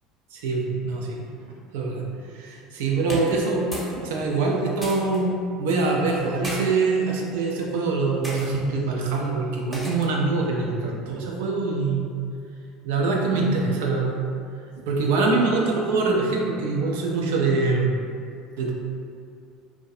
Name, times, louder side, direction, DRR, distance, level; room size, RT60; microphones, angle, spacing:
voice 1, 0.3-1.2 1.7-2.0 2.3-5.3 5.6-12.1 12.8-14.2 14.9-17.9 18.6-18.7, right 3 dB, 80° right, 0 dB, 0.4 m, -24 dB
sound 1, 3.1-4.0 4.3-5.2 6.1-6.6 7.4-7.6 8.2-8.5 9.7-10.2, equal, 10° right, 0.7 m, -36 dB
2.3 x 2.1 x 2.6 m, 2.3 s
supercardioid pair, 90°, 0 cm